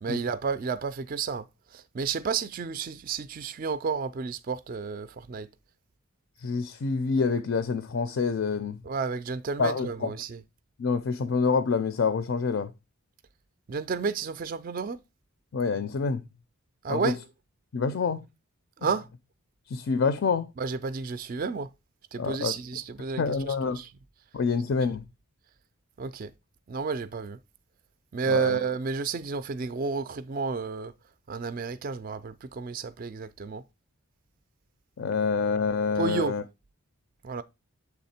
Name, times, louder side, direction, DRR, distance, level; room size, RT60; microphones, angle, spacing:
voice 1, 0.0-1.5 1.7-5.5 8.8-10.4 13.7-15.0 16.8-17.2 18.8-19.1 20.6-21.7 22.1-23.9 26.0-26.3 26.7-27.4 28.1-30.9 31.3-33.6 36.0-36.4 37.2-37.4, right 5 dB, 40° right, 0.3 m, -31 dB
voice 2, 6.4-8.8 9.6-10.1 10.8-12.7 15.5-16.2 16.9-17.1 17.7-18.2 19.7-20.5 22.2-22.5 23.2-23.8 24.3-25.0 28.3-28.6 35.0-36.4, left 5 dB, 55° left, 0.4 m, -27 dB
7.2 x 3.4 x 4.2 m
head